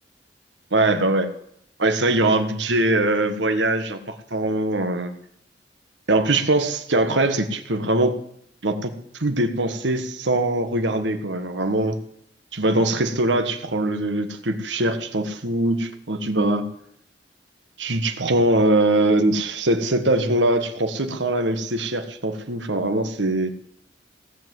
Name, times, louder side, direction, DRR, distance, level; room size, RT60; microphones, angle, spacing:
voice 1, 0.7-1.3 1.8-5.1 6.1-8.2 8.6-8.9 9.2-12.0 12.5-16.6 17.8-23.5, right 2 dB, 80° right, 7 dB, 1.6 m, -22 dB
16.5 x 7.7 x 7.9 m, 0.71 s
head